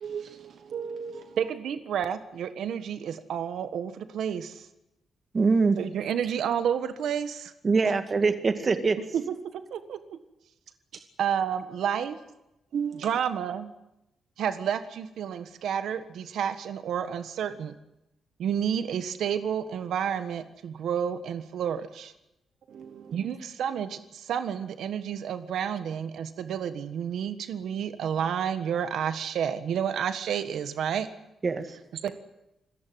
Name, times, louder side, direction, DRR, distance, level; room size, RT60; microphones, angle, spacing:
voice 1, 0.0-1.4 12.7-13.1 22.7-23.2, right 7 dB, 70° right, 9 dB, 1.1 m, -35 dB
voice 2, 1.4-4.7 5.8-7.5 9.1-10.2 11.2-12.2 12.9-13.7 14.4-17.7 18.4-22.1 23.1-31.1 32.0-32.1, right 8 dB, 85° right, 10 dB, 1.5 m, -30 dB
voice 3, 5.3-5.8 7.6-9.0 31.4-31.7, right 4 dB, 35° right, 8 dB, 2.0 m, -23 dB
27.0 x 15.0 x 9.4 m, 0.91 s
cardioid pair, 130°, 0 cm